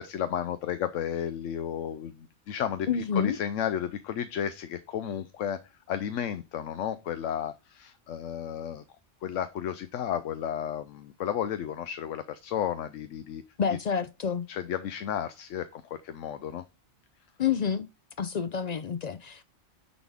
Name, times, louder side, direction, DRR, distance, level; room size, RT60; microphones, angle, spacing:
voice 1, 0.0-5.6 5.9-8.8 9.2-13.4 14.5-16.6, left 9 dB, 90° left, 1.0 m, -33 dB
voice 2, 2.9-3.4 13.6-14.5 17.4-17.9 18.2-19.4, left 7 dB, 60° left, 0.4 m, -28 dB
9.5 x 4.1 x 3.5 m
omnidirectional pair, 1.2 m